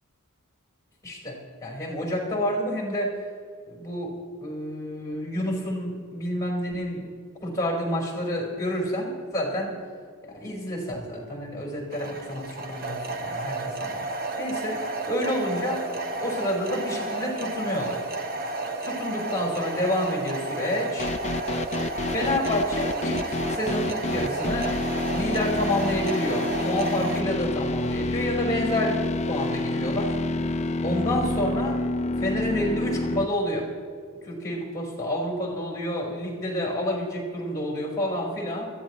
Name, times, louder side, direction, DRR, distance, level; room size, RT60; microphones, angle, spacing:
voice 1, 1.0-3.2 3.7-7.0 7.4-9.7 10.2-14.0 14.4-14.8 15.1-15.8 16.2-18.1 18.8-21.1 22.1-24.7 25.1-30.2 30.8-31.8 32.2-33.7 34.2-38.7, left 1 dB, 15° left, -1 dB, 4.8 m, -29 dB
sound 1, 11.9-27.2, right 2 dB, 45° right, 1.2 m, -32 dB
sound 2, 21.0-33.3, left 2 dB, 30° left, 0.5 m, -28 dB
22.5 x 15.0 x 3.2 m, 2.2 s
head